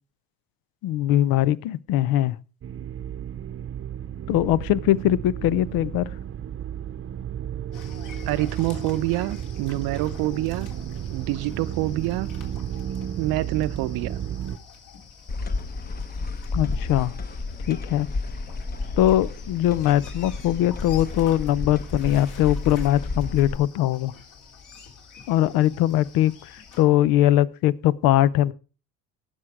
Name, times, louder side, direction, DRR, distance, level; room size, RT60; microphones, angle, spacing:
voice 1, 0.8-2.4 4.3-6.1 16.5-17.1 17.7-18.1 19.0-24.1 25.3-26.3 26.8-28.5, left 13 dB, 75° left, 0.8 m, -21 dB
sound 1, 2.6-14.6, right 9 dB, 35° right, 0.9 m, -33 dB
sound 2, 7.7-26.8, left 5 dB, 55° left, 3.4 m, -47 dB
voice 2, 8.3-10.7 11.1-12.3 13.2-14.2, right 16 dB, 80° right, 0.8 m, -26 dB
sound 3, 15.3-23.6, left 3 dB, 25° left, 1.0 m, -31 dB
17.5 x 6.4 x 4.8 m
cardioid pair, 100°, 36 cm